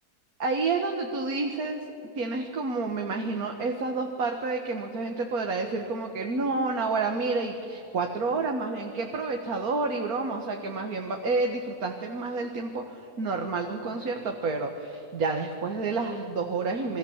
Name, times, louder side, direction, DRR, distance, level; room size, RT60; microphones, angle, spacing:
voice 1, 0.4-1.8 2.2-17.0, right 3 dB, 70° right, 3 dB, 1.9 m, -29 dB
28.0 x 22.0 x 7.3 m, 2.9 s
omnidirectional pair, 1.7 m